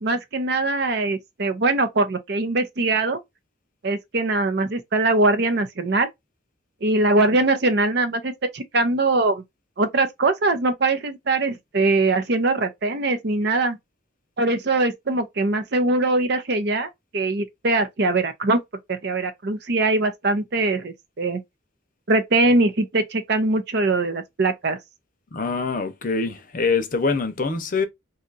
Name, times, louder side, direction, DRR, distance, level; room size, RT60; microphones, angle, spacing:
voice 1, 0.0-3.2 3.8-6.1 6.8-9.4 9.8-13.8 14.4-18.6 18.9-21.4 22.1-24.8, right 2 dB, 60° right, 0.6 m, -22 dB
voice 2, 25.3-27.9, left 4 dB, 45° left, 0.6 m, -24 dB
2.7 x 2.4 x 3.9 m
head